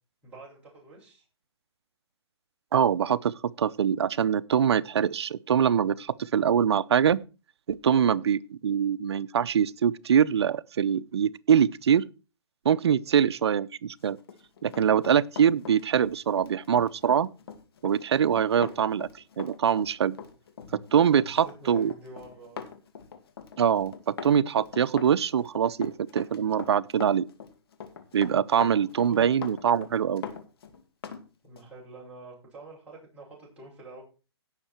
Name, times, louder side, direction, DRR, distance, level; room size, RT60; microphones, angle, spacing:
voice 1, 0.2-1.2 7.9-8.2 13.0-13.3 20.7-20.8 21.1-22.7 29.1-29.3 31.4-34.0, right 2 dB, 10° right, 6.7 m, -47 dB
voice 2, 2.7-7.2 7.7-12.0 12.6-14.2 14.6-17.3 17.8-19.1 19.4-20.2 20.7-21.9 23.6-27.2 28.1-30.2, right 8 dB, 70° right, 0.7 m, -24 dB
Run, 14.2-31.2 31.6-31.7, left 6 dB, 60° left, 2.3 m, -42 dB
17.0 x 6.6 x 4.5 m
hypercardioid pair, 160°, 14 cm